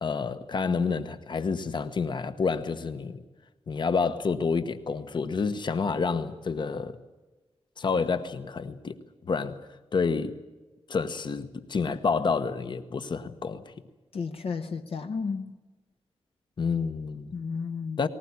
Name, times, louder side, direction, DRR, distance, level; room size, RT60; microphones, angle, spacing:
voice 1, 0.0-3.2 3.7-6.9 7.8-9.0 9.2-9.6 9.9-10.3 10.9-13.7 16.6-17.3 18.0-18.1, left 5 dB, 45° left, 1.1 m, -29 dB
voice 2, 14.1-15.6 17.3-18.0, left 5 dB, 60° left, 1.0 m, -33 dB
20.0 x 19.5 x 9.7 m
wide cardioid pair, 170°, 11 cm